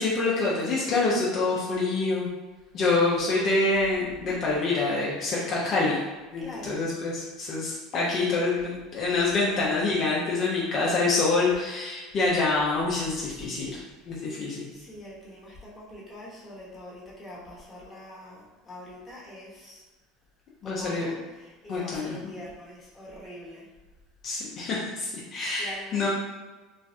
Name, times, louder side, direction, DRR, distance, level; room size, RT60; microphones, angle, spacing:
voice 1, 0.0-2.3 2.7-6.0 6.3-13.8 14.1-14.7 20.6-21.1 21.7-22.3 24.2-26.1, left 3 dB, 45° left, -6 dB, 0.7 m, -26 dB
voice 2, 3.2-3.7 6.4-6.8 14.0-14.2 14.7-19.8 20.6-23.7 25.6-26.1, left 1 dB, 10° left, -8 dB, 1.1 m, -44 dB
3.1 x 2.2 x 2.7 m, 1.2 s
supercardioid pair, 115°, 0 cm